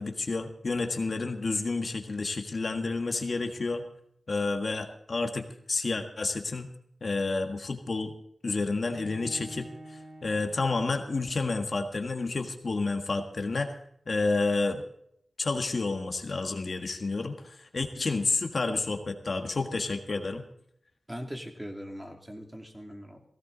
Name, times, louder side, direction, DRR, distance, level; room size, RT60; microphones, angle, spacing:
voice 1, 0.0-3.8 4.3-6.7 7.0-8.1 8.4-13.8 14.1-14.8 15.4-20.4, left 3 dB, 55° left, 5 dB, 1.6 m, -30 dB
Bowed string instrument, 8.9-11.9, right 1 dB, 85° right, 3.2 m, -47 dB
voice 2, 21.1-23.2, equal, 10° right, 3 dB, 2.6 m, -40 dB
17.0 x 16.0 x 4.0 m, 0.71 s
wide cardioid pair, 85°, 0 cm